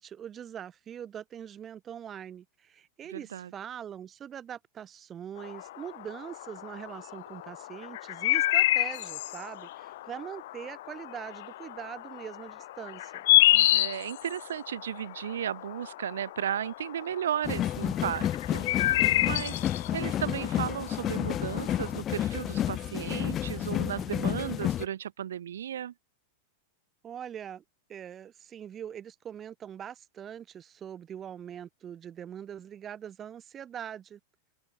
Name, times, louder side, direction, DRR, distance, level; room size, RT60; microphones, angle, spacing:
voice 1, 0.0-13.2 18.9-19.3 27.0-27.6 27.9-34.2, right 9 dB, 30° right, 2.7 m, -42 dB
voice 2, 3.1-3.5 13.5-25.9, right 10 dB, 80° right, 0.4 m, -35 dB
sound 1, 5.4-22.0, left 16 dB, 70° left, 0.6 m, -29 dB
sound 2, 17.4-24.9, left 11 dB, 35° left, 1.1 m, -31 dB
open air
hypercardioid pair, 110°, 0 cm